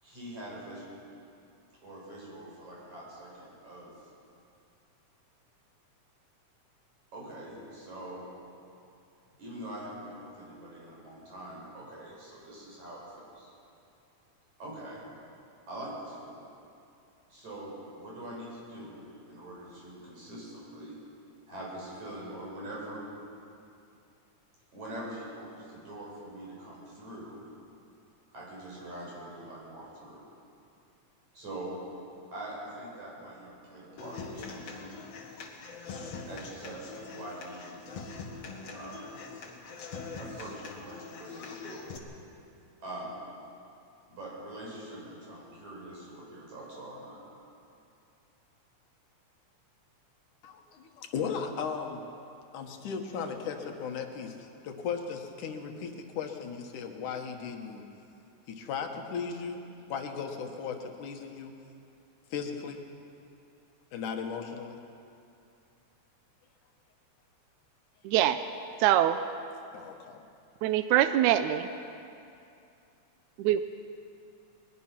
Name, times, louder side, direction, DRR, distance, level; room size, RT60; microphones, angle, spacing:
voice 1, 0.0-1.0 1.8-4.1 7.1-8.2 9.4-13.5 14.6-15.0 15.7-16.5 17.3-21.0 21.5-23.1 24.7-27.4 28.3-30.2 31.3-31.7 32.3-34.7 36.3-37.8 38.7-39.1 40.2-41.8 42.8-43.2 44.1-47.2, right 1 dB, 70° right, -5 dB, 7.8 m, -43 dB
Human voice / Acoustic guitar, 34.0-42.0, left 4 dB, 60° left, 3.1 m, -43 dB
voice 2, 50.4-52.0 52.5-57.9 58.5-59.6 59.9-61.5 62.3-62.8 63.9-64.8 69.7-70.2, left 6 dB, 90° left, 4 dB, 2.9 m, -36 dB
voice 3, 68.0-68.4 68.8-69.2 70.6-71.7 73.4-73.6, right 12 dB, 85° right, 10 dB, 2.0 m, -23 dB
21.0 x 21.0 x 6.0 m, 2.6 s
omnidirectional pair, 3.4 m